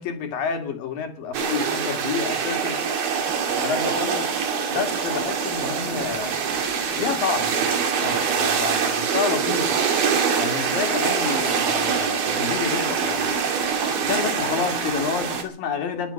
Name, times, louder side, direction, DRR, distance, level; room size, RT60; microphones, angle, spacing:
voice 1, 0.0-2.8 3.6-4.3 4.7-6.4 7.0-9.8 10.4-13.4 14.0-16.1, left 6 dB, 70° left, 4.2 m, -29 dB
sound 1, 1.3-15.4, right 6 dB, 80° right, 4.5 m, -24 dB
21.5 x 9.7 x 6.6 m
omnidirectional pair, 4.2 m